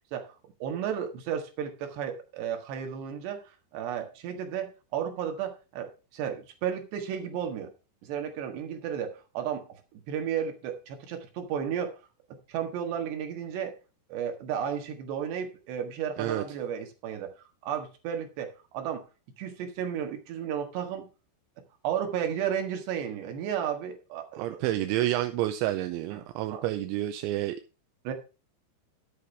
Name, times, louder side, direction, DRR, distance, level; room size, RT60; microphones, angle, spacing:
voice 1, 0.6-3.4 3.7-7.7 8.0-11.9 12.5-13.7 14.1-17.3 17.6-19.0 19.4-21.1 21.8-24.7 26.1-26.2 26.5-26.6 28.1-28.2, right 8 dB, 70° right, 5 dB, 3.6 m, -33 dB
voice 2, 24.3-27.6, right 14 dB, 85° right, 7 dB, 3.0 m, -29 dB
11.5 x 7.0 x 4.6 m, 0.31 s
omnidirectional pair, 5.3 m